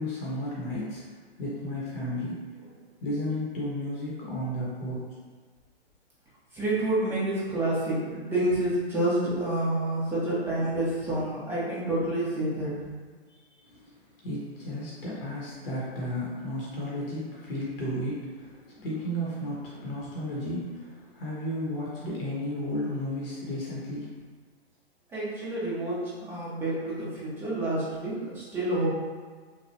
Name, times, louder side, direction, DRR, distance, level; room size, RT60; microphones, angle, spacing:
voice 1, 0.0-2.5 3.0-5.1 13.7-24.1, left 1 dB, 60° left, -6 dB, 0.9 m, -33 dB
voice 2, 6.5-12.7 25.1-28.9, right 1 dB, 5° right, -9 dB, 0.4 m, -28 dB
3.0 x 2.2 x 2.6 m, 1.5 s
hypercardioid pair, 130°, 32 cm